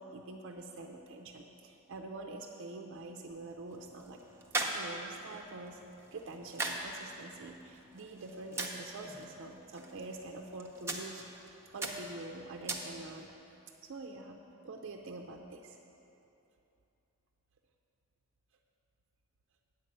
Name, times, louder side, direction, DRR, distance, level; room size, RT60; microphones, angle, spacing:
voice 1, 0.0-4.2 4.6-5.8 6.1-11.2 11.7-13.3 13.8-14.4 14.6-15.8, right 2 dB, 60° right, 2 dB, 0.5 m, -45 dB
sound 1, 3.3-13.3, right 2 dB, 10° right, 0.7 m, -42 dB
8.4 x 5.3 x 7.6 m, 2.9 s
head